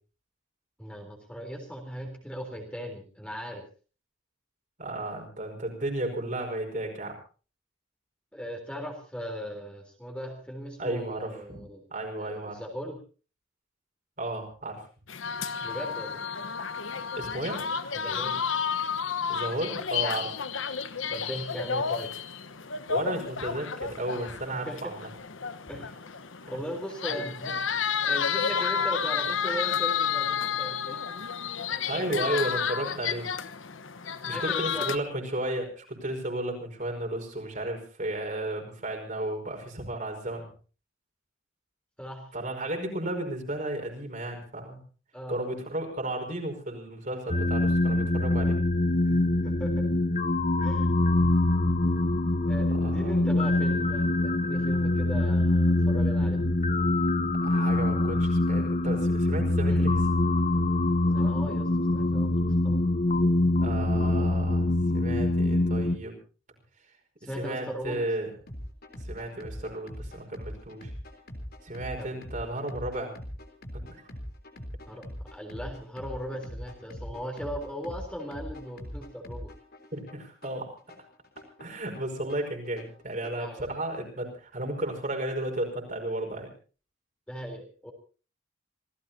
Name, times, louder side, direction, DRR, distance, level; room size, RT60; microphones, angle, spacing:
voice 1, 0.8-3.6 8.3-11.8 12.2-13.0 15.6-16.3 17.9-18.4 21.1-22.1 24.5-24.8 25.7-26.0 26.5-31.0 31.6-32.2 34.3-34.9 42.0-42.3 45.1-45.6 49.0-49.9 50.6-50.9 52.5-56.5 59.7-60.0 61.1-62.4 62.6-62.8 67.2-68.0 72.0-72.2 74.9-75.0 75.3-79.5 83.4-83.7 87.3-87.9, equal, 5° left, 2 dB, 3.7 m, -38 dB
voice 2, 4.8-7.2 10.8-11.6 11.9-12.6 14.2-14.8 17.2-17.6 19.3-20.3 22.9-25.0 27.1-27.2 31.9-33.3 34.3-40.5 42.3-44.8 45.3-48.6 52.7-53.2 57.4-59.9 63.6-64.7 64.9-66.2 67.2-68.3 69.0-70.9 71.6-73.2 73.7-74.1 79.9-80.7 81.6-86.5, right 1 dB, 40° right, 2 dB, 5.4 m, -33 dB
sound 1, 15.1-35.0, left 7 dB, 75° left, 1.2 m, -31 dB
sound 2, 47.3-66.0, left 2 dB, 35° left, 1.1 m, -24 dB
sound 3, 68.5-83.5, equal, 50° left, 3.6 m, -42 dB
27.5 x 17.5 x 2.8 m, 0.37 s
head